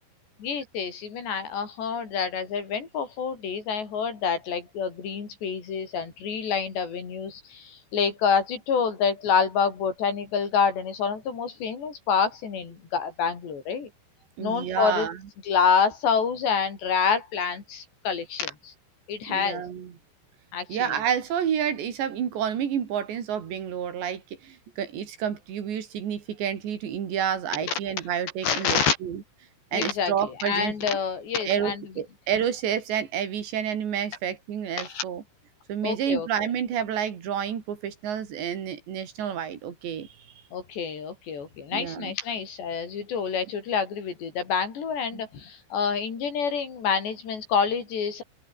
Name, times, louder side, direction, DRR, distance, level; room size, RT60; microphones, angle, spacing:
voice 1, 0.4-13.9 14.4-15.1 15.5-18.7 19.1-19.6 20.5-21.0 28.4-29.0 29.7-30.1 30.4-31.8 34.8-35.0 35.8-36.3 40.5-48.2, left 6 dB, 60° left, 6.9 m, -27 dB
voice 2, 14.4-15.2 19.3-19.9 20.7-29.2 29.7-30.8 31.5-35.2 35.7-40.1 41.7-42.2 45.1-45.2, right 8 dB, 60° right, 5.3 m, -29 dB
open air
omnidirectional pair, 5.7 m